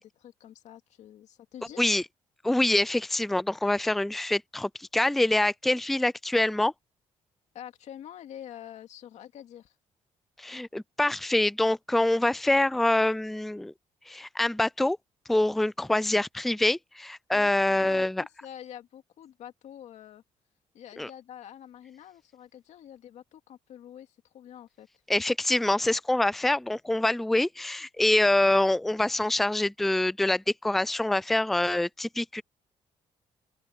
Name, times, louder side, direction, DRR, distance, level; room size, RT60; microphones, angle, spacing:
voice 1, 0.0-1.9 7.5-9.8 17.3-20.2 20.7-24.9, left 10 dB, 70° left, 2.4 m, -46 dB
voice 2, 2.4-6.7 10.4-13.7 14.1-15.0 15.3-18.2 21.0-21.1 25.1-32.4, left 1 dB, ahead, 0.3 m, -25 dB
open air
cardioid pair, 110°, 13 cm